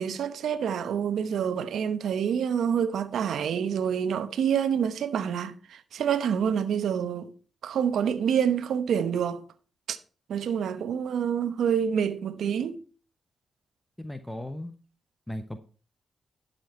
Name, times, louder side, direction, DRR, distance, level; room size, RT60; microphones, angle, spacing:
voice 1, 0.0-7.3 7.6-9.4 9.9-10.0 10.3-12.8, right 8 dB, 80° right, 0.9 m, -27 dB
voice 2, 14.0-14.8 15.3-15.6, left 1 dB, 10° left, 1.0 m, -36 dB
11.5 x 6.8 x 4.3 m
cardioid pair, 65°, 0 cm